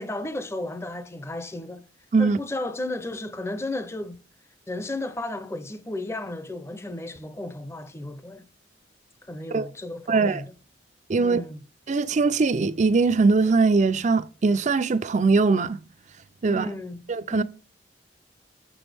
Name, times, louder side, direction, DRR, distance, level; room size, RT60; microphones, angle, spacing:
voice 1, 0.0-1.8 2.2-4.2 4.7-8.4 9.3-10.5 11.2-11.6 16.5-17.4, left 1 dB, 15° left, 0.6 m, -34 dB
voice 2, 10.1-10.4 11.1-11.4 11.9-15.8 16.4-16.7 17.1-17.4, right 4 dB, 40° right, 0.4 m, -21 dB
6.8 x 6.1 x 3.4 m
head